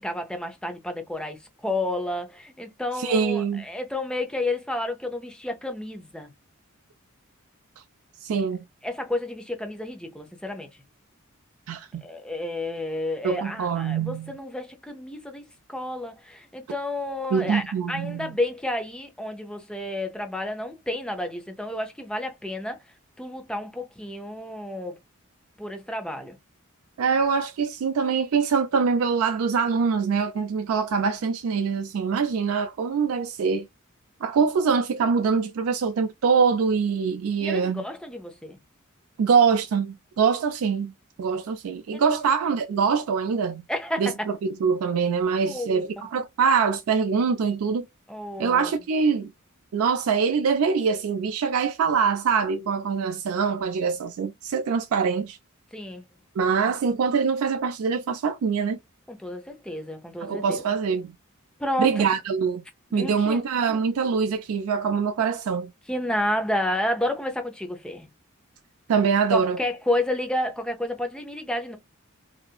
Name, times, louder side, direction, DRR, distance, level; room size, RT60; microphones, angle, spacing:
voice 1, 0.0-6.3 8.8-10.7 12.0-15.4 15.7-22.8 23.2-25.0 25.6-26.4 37.4-38.6 41.9-42.0 43.7-44.3 45.4-45.9 48.1-48.7 55.7-56.0 59.1-60.6 61.6-62.0 62.9-63.4 65.9-68.1 69.3-71.8, left 1 dB, 5° left, 0.5 m, -30 dB
voice 2, 3.0-3.7 8.2-8.6 11.7-12.0 13.2-14.3 17.3-18.3 27.0-33.7 34.2-37.8 39.2-40.9 41.2-43.6 44.0-44.1 44.6-47.9 48.4-49.3 49.7-55.4 56.4-58.8 60.2-61.1 61.8-62.6 62.9-65.7 68.9-69.6, right 5 dB, 80° right, 0.4 m, -24 dB
2.8 x 2.4 x 2.3 m
head